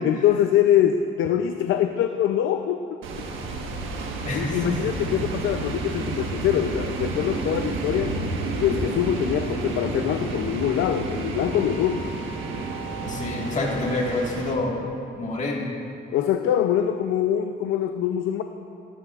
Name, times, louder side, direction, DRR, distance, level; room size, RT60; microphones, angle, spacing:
voice 1, 0.0-2.8 4.3-8.2 8.6-12.1 16.1-18.4, left 10 dB, 80° left, 6 dB, 0.5 m, -23 dB
sound 1, 3.0-14.5, right 3 dB, 85° right, 1.4 m, -30 dB
voice 2, 4.2-5.1 13.0-14.8 15.2-15.7, left 2 dB, 40° left, -2 dB, 1.7 m, -28 dB
18.0 x 13.5 x 2.4 m, 2.8 s
cardioid pair, 90°, 20 cm